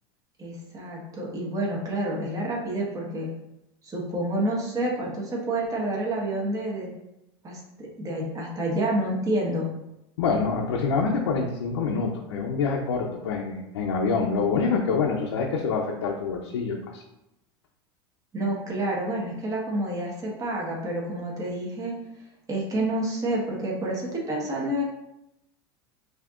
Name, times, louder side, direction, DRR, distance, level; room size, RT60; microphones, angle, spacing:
voice 1, 0.4-3.3 3.8-6.9 7.4-9.7 18.3-21.9 22.5-24.8, right 1 dB, 25° right, -3 dB, 1.2 m, -28 dB
voice 2, 10.2-17.0, left 4 dB, 85° left, -1 dB, 0.6 m, -26 dB
5.6 x 2.8 x 2.4 m, 0.87 s
hypercardioid pair, 95°, 14 cm